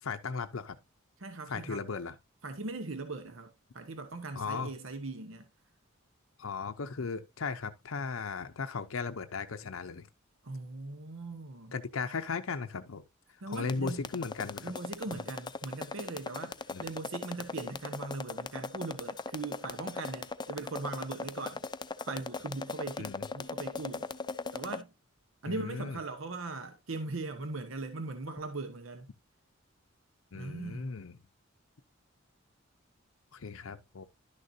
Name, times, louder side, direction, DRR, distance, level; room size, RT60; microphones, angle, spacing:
voice 1, 0.0-0.8 1.5-2.1 4.4-4.7 6.4-10.1 11.7-13.0 13.3-14.7 15.1-15.2 16.7-16.9 23.0-23.3 25.4-26.0 30.3-31.2 33.3-34.0, left 5 dB, 90° left, 0.6 m, -37 dB
voice 2, 1.2-1.8 2.4-5.5 10.4-11.7 13.4-14.0 14.6-21.6 22.1-24.1 24.5-24.9 25.4-29.1 30.3-30.9, right 3 dB, 70° right, 1.0 m, -40 dB
sound 1, 13.5-24.8, left 4 dB, 20° left, 0.5 m, -38 dB
11.5 x 6.5 x 2.7 m
head